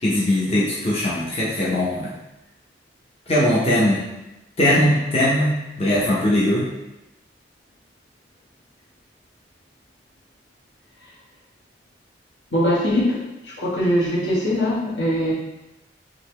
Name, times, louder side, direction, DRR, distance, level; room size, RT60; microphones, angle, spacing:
voice 1, 0.0-2.1 3.3-4.0 4.6-5.5 5.8-6.7, left 1 dB, 35° left, -7 dB, 0.7 m, -20 dB
voice 2, 12.5-13.2 13.6-15.3, equal, 75° left, -6 dB, 1.2 m, -21 dB
3.7 x 2.8 x 3.2 m, 0.97 s
head